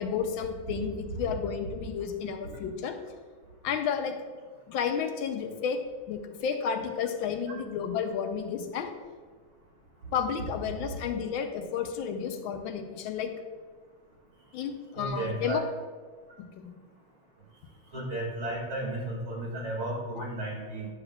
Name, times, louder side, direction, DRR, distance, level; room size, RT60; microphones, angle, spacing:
voice 1, 0.0-3.0 3.6-4.2 4.7-5.8 6.1-8.9 10.1-13.3 14.5-15.6 16.4-16.7 20.2-20.3, left 7 dB, 80° left, 6 dB, 1.4 m, -32 dB
voice 2, 15.0-15.6 17.9-20.9, right 1 dB, 85° right, -5 dB, 3.1 m, -33 dB
10.0 x 7.0 x 2.3 m, 1.5 s
omnidirectional pair, 2.2 m